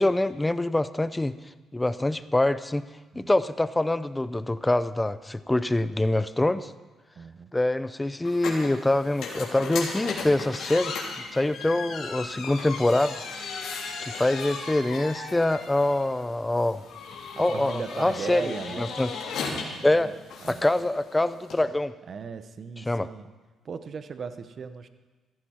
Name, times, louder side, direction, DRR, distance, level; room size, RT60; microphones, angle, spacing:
voice 1, 0.0-1.3 1.7-2.9 3.1-6.7 7.5-10.9 11.3-13.2 14.0-16.8 17.4-19.1 19.8-20.1 20.5-21.9 22.9-23.1, left 1 dB, 10° left, 14 dB, 0.6 m, -25 dB
voice 2, 7.2-7.5 17.4-19.0 19.9-20.1 20.4-20.7 22.1-23.3 23.6-24.9, right 5 dB, 50° right, 11 dB, 0.9 m, -37 dB
sound 1, 8.2-21.6, left 4 dB, 80° left, 3.4 m, -36 dB
16.5 x 14.0 x 4.4 m, 1.3 s
cardioid pair, 90°, 0 cm